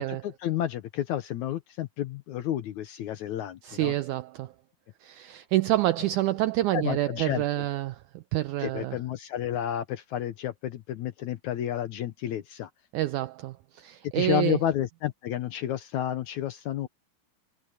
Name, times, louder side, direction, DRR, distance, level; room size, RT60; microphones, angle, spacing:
voice 1, 0.0-3.9 6.7-7.7 8.6-12.7 14.1-16.9, left 11 dB, 75° left, 1.9 m, -31 dB
voice 2, 3.6-4.5 5.0-9.0 12.9-14.6, right 15 dB, 85° right, 1.7 m, -28 dB
omnidirectional pair, 4.2 m